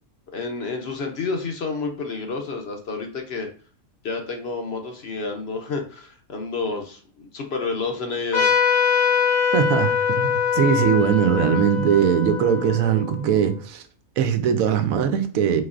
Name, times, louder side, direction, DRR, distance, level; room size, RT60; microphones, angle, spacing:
voice 1, 0.3-3.5 4.0-8.5, left 4 dB, 60° left, 0.8 m, -29 dB
Trumpet, 8.3-13.4, left 7 dB, 85° left, 1.5 m, -23 dB
voice 2, 9.5-13.8 14.2-15.6, right 8 dB, 85° right, 1.0 m, -20 dB
4.1 x 3.2 x 2.4 m
omnidirectional pair, 1.4 m